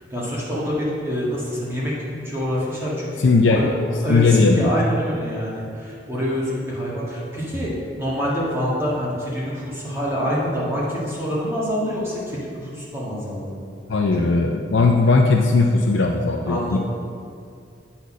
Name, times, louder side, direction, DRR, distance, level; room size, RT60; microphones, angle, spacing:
voice 1, 0.0-7.7 8.0-13.6 14.2-14.3 16.5-16.8, equal, 15° right, -7 dB, 1.7 m, -26 dB
voice 2, 3.2-3.6 4.1-4.7 13.9-16.8, left 3 dB, 75° left, 1 dB, 0.5 m, -18 dB
8.1 x 4.3 x 6.2 m, 2.4 s
head